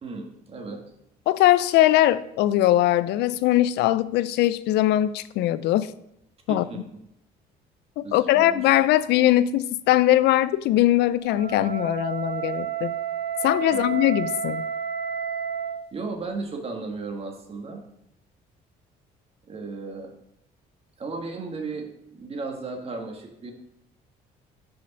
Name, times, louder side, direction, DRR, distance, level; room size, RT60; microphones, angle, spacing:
voice 1, 0.0-0.8 6.5-6.8 8.0-8.8 13.7-13.9 15.9-17.8 19.5-20.1 21.0-23.5, right 3 dB, 35° right, 3 dB, 1.6 m, -35 dB
voice 2, 1.3-5.9 6.5-6.6 8.0-12.9 13.4-14.6, left 14 dB, 80° left, 16 dB, 0.4 m, -21 dB
Wind instrument woodwind instrument, 11.2-15.9, right 8 dB, 80° right, 1.5 m, -31 dB
6.9 x 5.1 x 5.3 m, 0.79 s
cardioid pair, 110°, 17 cm